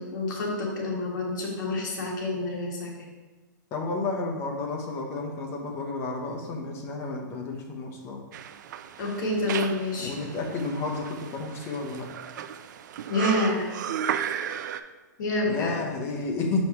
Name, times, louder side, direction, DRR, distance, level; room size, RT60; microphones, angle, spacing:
voice 1, 0.0-2.9 9.0-10.1 13.1-13.7 15.2-15.8, left 2 dB, 65° left, -2 dB, 1.8 m, -28 dB
voice 2, 3.7-8.2 10.0-12.1 15.5-16.7, left 3 dB, 25° left, 1 dB, 0.9 m, -31 dB
sound 1, 8.3-14.8, right 9 dB, 60° right, 0.4 m, -35 dB
6.2 x 5.3 x 3.1 m, 1.2 s
hypercardioid pair, 155°, 11 cm